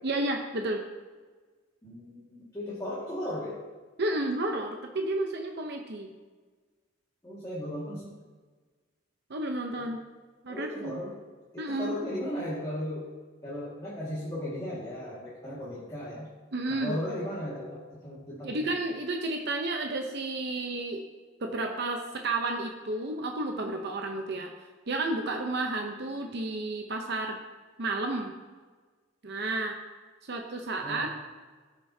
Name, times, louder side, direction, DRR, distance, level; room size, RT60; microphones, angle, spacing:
voice 1, 0.0-0.8 4.0-6.1 9.3-10.0 10.4-11.0 11.6-12.0 16.5-17.0 18.4-21.0 21.4-24.5 24.9-27.4 27.8-28.3 29.2-29.7 30.3-31.1, right 2 dB, 55° right, 3 dB, 0.8 m, -31 dB
voice 2, 1.8-3.6 7.2-8.1 9.8-9.9 10.5-11.2 11.5-13.1 13.4-16.3 16.7-18.7 30.7-31.1, left 1 dB, 15° left, -8 dB, 1.9 m, -36 dB
16.5 x 6.7 x 2.8 m, 1.4 s
head